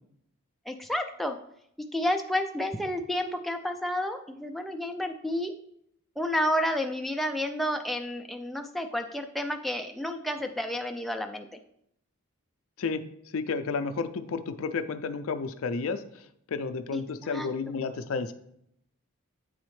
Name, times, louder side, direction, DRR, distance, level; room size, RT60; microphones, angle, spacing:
voice 1, 0.7-1.4 1.8-5.5 6.2-11.6 16.9-17.8, left 1 dB, ahead, 4 dB, 0.3 m, -31 dB
voice 2, 13.3-16.0 16.5-18.3, left 4 dB, 65° left, 9 dB, 0.4 m, -31 dB
8.4 x 4.1 x 3.2 m, 0.73 s
head